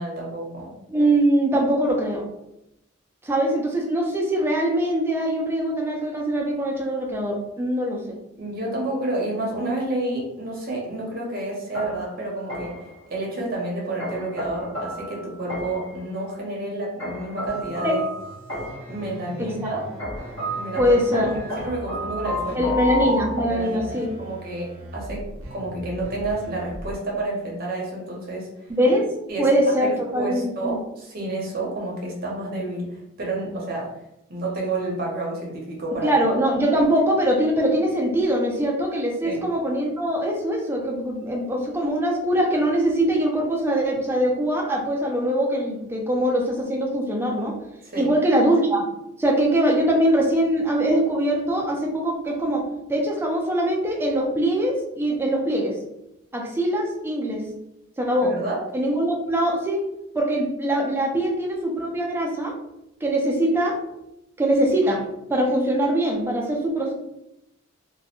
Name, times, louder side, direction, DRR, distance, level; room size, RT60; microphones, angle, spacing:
voice 1, 0.0-0.7 8.4-18.0 18.9-19.8 20.5-22.7 23.5-28.7 29.3-33.9 34.3-36.1 39.2-39.4 47.8-48.1 58.2-58.6, right 2 dB, 45° right, -2 dB, 0.7 m, -30 dB
voice 2, 0.9-2.3 3.2-8.2 17.8-18.0 19.4-19.5 20.8-21.4 22.5-24.1 28.7-29.1 29.4-30.8 36.0-47.6 48.0-48.8 49.2-55.8 56.3-57.4 58.0-58.3 58.7-59.8 60.1-62.6 63.0-63.8 64.4-65.0 65.3-66.9, right 1 dB, 10° right, -1 dB, 0.4 m, -22 dB
sound 1, 11.7-13.0 14.0-16.0 17.0-19.0 20.0-24.3, equal, 65° left, 1.1 m, -31 dB
sound 2, 17.5-27.0, right 1 dB, 85° right, 0.6 m, -39 dB
2.2 x 2.1 x 2.8 m, 0.85 s
head